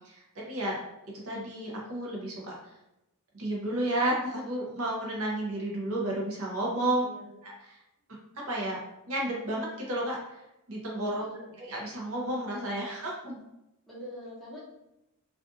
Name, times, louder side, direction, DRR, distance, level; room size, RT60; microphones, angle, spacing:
voice 1, 0.0-0.8 1.2-2.6 3.3-7.0 7.4-7.8 8.3-8.8 9.1-10.2 10.7-11.2 11.7-13.4, right 1 dB, 65° right, -3 dB, 0.7 m, -32 dB
voice 2, 7.0-7.4 11.2-11.6 13.9-14.6, equal, ahead, -9 dB, 0.9 m, -44 dB
2.5 x 2.4 x 2.4 m, 0.88 s
head